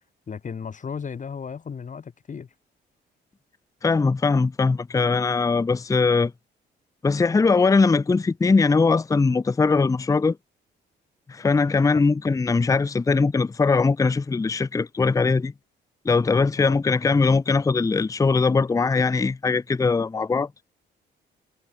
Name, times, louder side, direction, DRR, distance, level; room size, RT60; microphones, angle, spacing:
voice 1, 0.3-2.5 11.9-12.0 16.5-16.8, left 6 dB, 40° left, 1.7 m, -35 dB
voice 2, 3.8-6.3 7.0-10.4 11.3-15.5 16.0-20.5, left 4 dB, 15° left, 0.6 m, -21 dB
cardioid pair, 90°, 20 cm